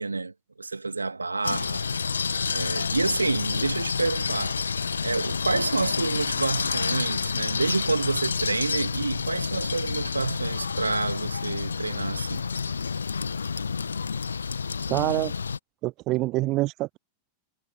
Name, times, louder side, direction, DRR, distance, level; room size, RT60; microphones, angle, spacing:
voice 1, 0.0-1.8 2.5-4.6 5.0-12.4, right 3 dB, 80° right, 2.4 m, -28 dB
sound 1, 1.4-15.6, left 5 dB, 75° left, 1.6 m, -29 dB
voice 2, 14.9-15.3 15.8-17.0, right 19 dB, 40° right, 0.5 m, -26 dB
figure-of-eight pair, 90°, 0 cm